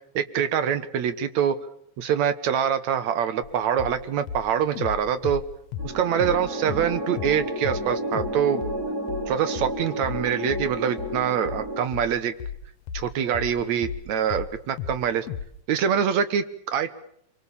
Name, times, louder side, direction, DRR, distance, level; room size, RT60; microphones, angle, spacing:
voice 1, 0.1-1.6 2.0-5.4 5.8-8.6 9.3-12.3 12.9-15.3 15.7-16.9, right 8 dB, 70° right, 12 dB, 2.5 m, -25 dB
sound 1, 3.4-3.5 3.8-4.0 4.3-6.4 6.7-6.9 7.2-7.4 7.6-7.9 8.1-8.4 8.6-14.1 14.3-15.0 15.3-15.5, left 8 dB, 65° left, 2.1 m, -34 dB
sound 2, 5.8-11.8, right 1 dB, 30° right, 3.6 m, -32 dB
26.0 x 23.5 x 7.1 m, 0.70 s
omnidirectional pair, 3.4 m